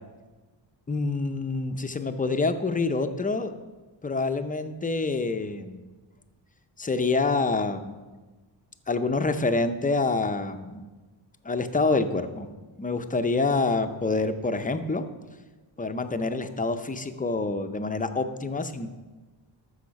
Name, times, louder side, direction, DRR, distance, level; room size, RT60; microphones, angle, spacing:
voice 1, 0.9-3.5 4.0-5.8 6.8-8.0 8.9-10.8 11.4-12.5 12.8-15.0 15.8-18.9, left 3 dB, 20° left, 8 dB, 0.5 m, -27 dB
13.5 x 6.5 x 5.2 m, 1.3 s
wide cardioid pair, 145°, 46 cm